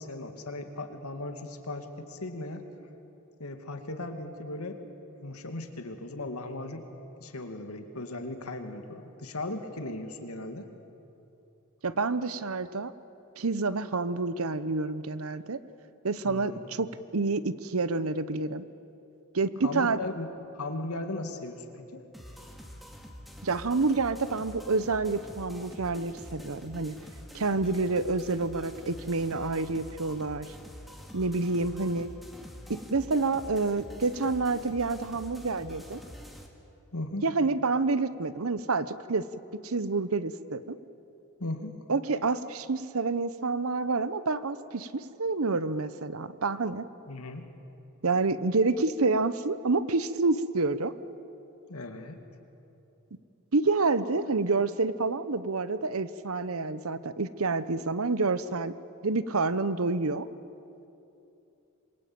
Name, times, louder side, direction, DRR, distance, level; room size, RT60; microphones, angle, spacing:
voice 1, 0.0-2.6 3.4-4.8 5.2-6.8 7.2-10.7 16.2-16.7 19.6-22.0 36.9-37.2 41.4-41.8 47.1-47.5 51.7-52.2, left 2 dB, 85° left, 6 dB, 2.5 m, -37 dB
voice 2, 11.8-12.9 13.4-15.6 16.0-18.6 19.3-20.0 23.4-27.0 27.3-30.5 31.1-32.1 32.7-36.0 37.2-39.2 39.6-40.8 41.9-46.8 48.0-50.9 53.5-58.7 59.0-60.3, right 3 dB, 75° right, 15 dB, 1.0 m, -28 dB
sound 1, 22.1-36.5, equal, ahead, 2.4 m, -46 dB
27.0 x 23.0 x 8.8 m, 2.9 s
head